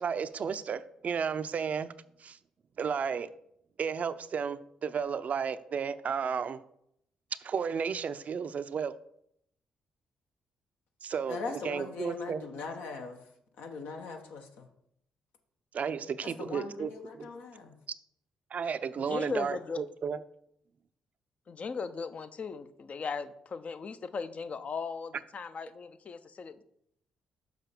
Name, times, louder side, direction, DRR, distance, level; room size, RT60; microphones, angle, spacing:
voice 1, 0.0-1.9 2.2-2.4 2.8-3.3 3.8-6.6 7.4-9.0 11.0-12.4 15.7-16.9 17.2-17.3 18.5-20.2, right 6 dB, 50° right, 13 dB, 0.5 m, -33 dB
voice 2, 11.3-13.2 13.6-14.7 16.2-17.8, left 4 dB, 70° left, 4 dB, 1.1 m, -40 dB
voice 3, 19.0-19.8 21.5-26.6, left 5 dB, 45° left, 11 dB, 0.7 m, -38 dB
6.6 x 5.7 x 5.0 m, 0.73 s
hypercardioid pair, 45°, 3 cm